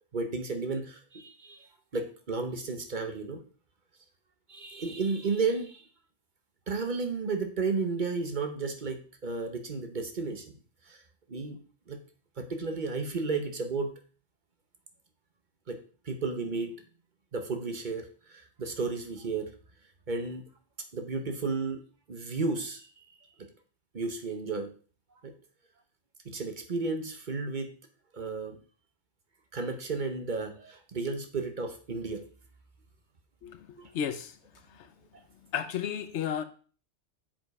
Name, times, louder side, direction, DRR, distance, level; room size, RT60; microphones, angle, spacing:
voice 1, 0.1-1.6 1.9-3.4 4.5-5.8 6.7-10.5 10.9-11.0 11.3-11.6 11.9-12.0 12.4-13.9 15.7-15.8 16.0-16.7 17.3-19.5 20.1-20.4 20.9-21.8 22.1-23.0 23.9-24.7 25.2-25.3 26.2-27.7 28.1-28.6 29.5-32.2 33.8-33.9, right 4 dB, 45° right, 1.1 m, -33 dB
voice 2, 33.9-34.4 34.8-34.9 35.5-36.4, left 8 dB, 90° left, 1.0 m, -32 dB
7.3 x 5.2 x 4.8 m
omnidirectional pair, 1.2 m